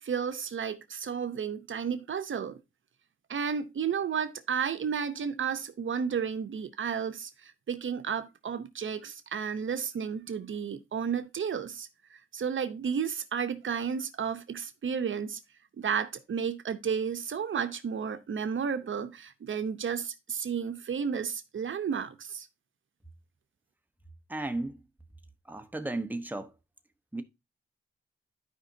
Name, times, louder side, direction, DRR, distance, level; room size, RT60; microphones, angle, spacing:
voice 1, 0.0-2.6 3.3-15.4 15.8-22.5, right 7 dB, 70° right, 0.8 m, -32 dB
voice 2, 24.3-24.8 25.5-26.5 27.1-27.2, right 2 dB, 10° right, 1.1 m, -34 dB
12.0 x 5.1 x 2.7 m
wide cardioid pair, 85°, 21 cm